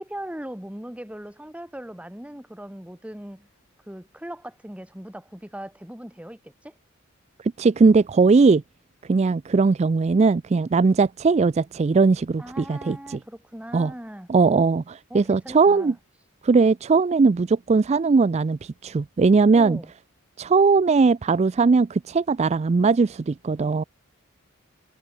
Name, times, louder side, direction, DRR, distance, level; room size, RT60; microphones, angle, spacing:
voice 1, 0.0-3.5 3.9-6.7 10.8-10.9 12.4-14.3 15.1-15.9 19.5-19.9, right 1 dB, 5° right, 1.3 m, -39 dB
voice 2, 7.4-8.6 9.1-13.2 13.7-13.9 14.3-15.9 16.4-19.8 20.4-23.8, right 4 dB, 30° right, 0.3 m, -19 dB
head